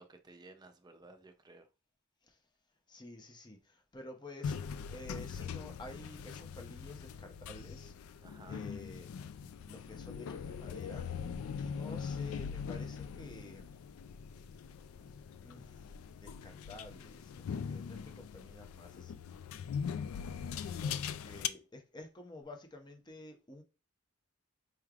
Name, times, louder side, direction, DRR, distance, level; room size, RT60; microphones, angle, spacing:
voice 1, 0.0-1.7 8.2-8.6 21.4-21.5, right 2 dB, 20° right, 0.5 m, -56 dB
voice 2, 2.9-9.1 9.4-13.7 15.0-15.1 15.4-19.2 20.7-23.6, left 2 dB, 20° left, 0.7 m, -51 dB
sound 1, 4.4-21.5, left 7 dB, 90° left, 0.3 m, -41 dB
4.6 x 3.2 x 2.4 m
head